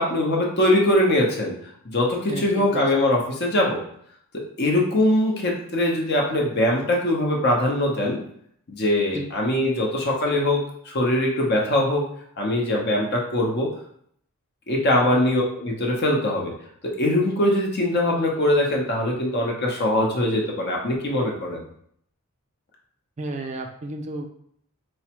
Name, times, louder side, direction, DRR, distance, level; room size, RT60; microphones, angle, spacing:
voice 1, 0.0-1.5 1.8-3.8 4.3-8.2 8.7-12.1 12.4-13.7 14.7-16.5 16.8-21.6, left 1 dB, 50° left, -1 dB, 0.8 m, -22 dB
voice 2, 2.3-2.9 9.1-9.3 15.1-15.2 23.2-24.3, right 2 dB, 30° right, 4 dB, 0.3 m, -33 dB
4.7 x 2.1 x 2.9 m, 0.66 s
head